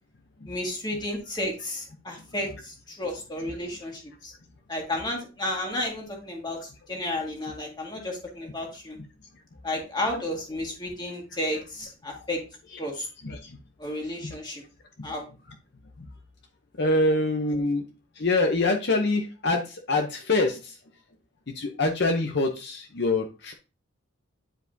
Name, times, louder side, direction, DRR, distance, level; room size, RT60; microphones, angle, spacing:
voice 1, 0.5-4.3 4.7-9.0 9.6-12.4 12.8-13.1 13.8-14.6 15.0-15.2, left 1 dB, 20° left, 0 dB, 1.8 m, -32 dB
voice 2, 16.8-17.8 18.2-20.7 21.6-23.5, left 2 dB, 50° left, 4 dB, 0.7 m, -25 dB
10.0 x 4.8 x 2.7 m, 0.32 s
head